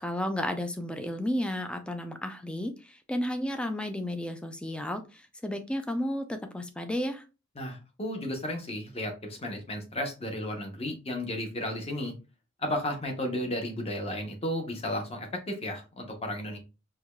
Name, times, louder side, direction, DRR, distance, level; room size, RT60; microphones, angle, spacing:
voice 1, 0.0-7.2, left 1 dB, 5° left, 7 dB, 0.3 m, -32 dB
voice 2, 7.6-12.1 12.6-16.6, left 1 dB, 30° left, 3 dB, 0.8 m, -33 dB
4.7 x 2.2 x 2.2 m, 0.30 s
head